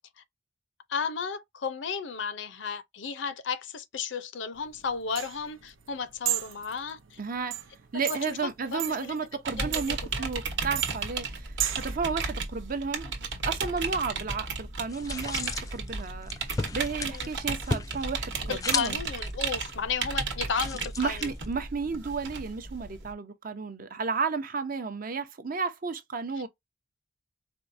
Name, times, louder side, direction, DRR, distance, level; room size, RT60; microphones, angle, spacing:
voice 1, 0.9-7.2 8.1-8.3 8.6-10.3 17.1-17.3 18.4-21.3, left 5 dB, 65° left, 0.6 m, -34 dB
sound 1, 4.6-12.0, right 13 dB, 90° right, 0.6 m, -35 dB
voice 2, 7.2-7.6 7.9-13.1 13.4-19.0 21.0-26.5, right 5 dB, 45° right, 0.6 m, -33 dB
sound 2, 9.5-23.1, right 4 dB, 65° right, 1.0 m, -34 dB
sound 3, 14.9-21.7, left 4 dB, 20° left, 0.3 m, -37 dB
4.4 x 2.1 x 2.5 m
head